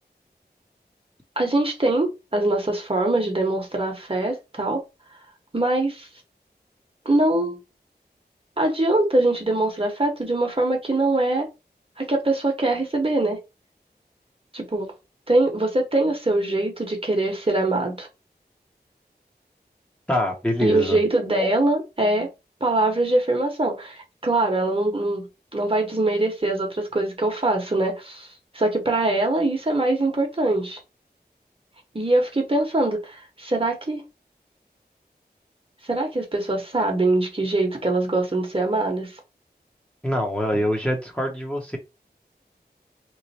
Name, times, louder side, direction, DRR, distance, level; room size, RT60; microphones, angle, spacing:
voice 1, 1.4-4.8 5.5-6.1 7.0-7.6 8.6-11.5 12.0-13.4 14.5-14.9 15.3-18.1 20.6-22.3 22.6-25.3 25.5-28.3 28.5-30.8 31.9-34.0 35.9-39.2, right 2 dB, 35° right, 1.0 m, -23 dB
voice 2, 20.1-21.0 40.0-41.8, left 1 dB, 5° left, 0.8 m, -24 dB
3.1 x 2.0 x 4.1 m
wide cardioid pair, 60°, 17 cm